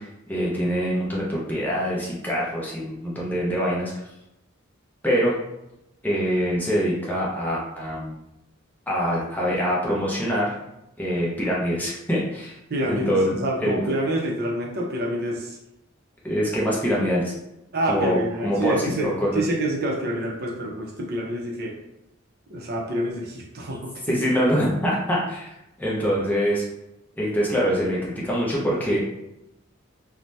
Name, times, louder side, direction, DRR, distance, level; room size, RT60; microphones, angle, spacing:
voice 1, 0.0-3.9 5.0-5.4 6.0-8.2 8.9-10.5 11.0-12.6 12.9-13.3 13.6-13.8 16.2-17.3 17.9-19.4 24.1-25.5 25.8-26.6 27.2-29.0, equal, 10° left, -5 dB, 0.5 m, -24 dB
voice 2, 12.7-15.6 17.7-21.8 22.5-24.2, right 1 dB, 50° right, -1 dB, 0.6 m, -27 dB
2.7 x 2.1 x 3.2 m, 0.88 s
head